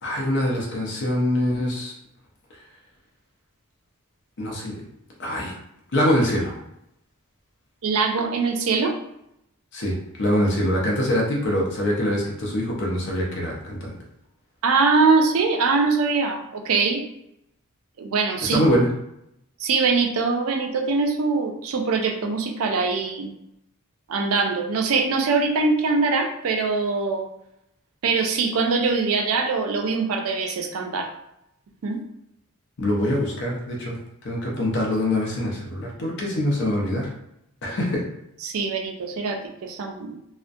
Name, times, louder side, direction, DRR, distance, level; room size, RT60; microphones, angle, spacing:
voice 1, 0.0-1.9 4.4-4.9 5.2-5.5 5.9-6.5 9.7-13.9 18.5-18.9 32.8-34.0 34.2-37.1 37.6-38.0, left 1 dB, 55° left, -2 dB, 0.5 m, -24 dB
voice 2, 7.8-8.9 14.6-17.0 18.0-18.6 19.6-23.3 24.1-27.3 28.0-31.1 31.8-32.0 38.4-40.2, right 4 dB, 70° right, 4 dB, 0.4 m, -22 dB
2.4 x 2.1 x 2.5 m, 0.80 s
head